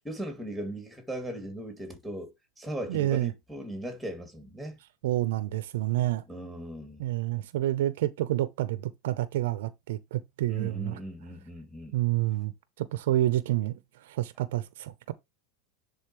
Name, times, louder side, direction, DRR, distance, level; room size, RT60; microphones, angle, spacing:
voice 1, 0.0-4.8 6.3-7.0 10.5-11.9, right 1 dB, ahead, 2.7 m, -38 dB
voice 2, 2.9-3.3 5.0-6.2 7.0-11.0 11.9-15.1, right 14 dB, 75° right, 0.7 m, -29 dB
10.0 x 4.2 x 3.1 m
supercardioid pair, 140°, 0 cm